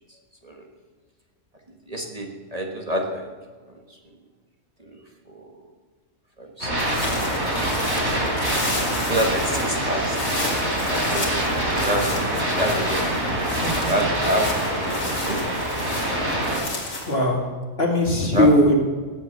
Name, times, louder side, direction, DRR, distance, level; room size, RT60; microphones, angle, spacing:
voice 1, 1.9-3.3 3.7-4.0 4.8-5.6 6.4-8.1 9.0-10.2 10.9-13.1 13.9-14.6 15.2-15.4 18.3-18.5, equal, 30° right, 2 dB, 1.5 m, -28 dB
sound 1, 6.6-16.6, right 1 dB, 60° right, 4.1 m, -25 dB
sound 2, 6.8-17.1, left 2 dB, 90° left, 2.9 m, -33 dB
voice 2, 13.5-14.1 17.1-17.4 17.8-18.8, left 1 dB, 50° left, 1 dB, 2.4 m, -19 dB
18.5 x 8.0 x 6.9 m, 1.5 s
omnidirectional pair, 1.3 m